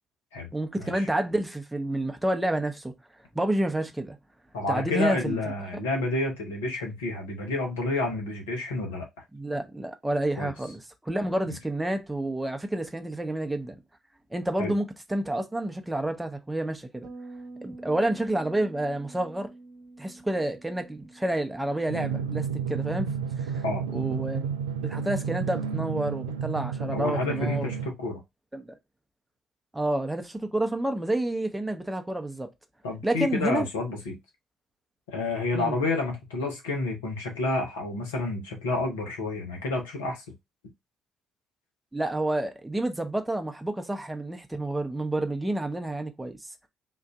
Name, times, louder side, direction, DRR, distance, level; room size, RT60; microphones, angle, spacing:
voice 1, 0.5-2.9 3.3-4.2 4.7-5.4 9.3-13.8 14.3-17.1 17.6-19.5 20.0-23.6 23.9-24.5 24.8-27.7 28.5-28.7 29.7-32.5 33.0-33.7 35.5-35.8 41.9-46.5, right 1 dB, 10° right, 0.7 m, -29 dB
voice 2, 4.5-9.1 10.4-10.5 11.5-11.6 14.6-14.7 23.6-23.8 26.9-28.2 32.8-34.2 35.1-40.2, left 2 dB, 80° left, 0.9 m, -29 dB
Bass guitar, 17.0-26.4, right 2 dB, 65° right, 0.8 m, -49 dB
Drum, 21.9-27.9, right 6 dB, 80° right, 0.3 m, -31 dB
3.8 x 2.5 x 2.3 m
figure-of-eight pair, 45°, 0 cm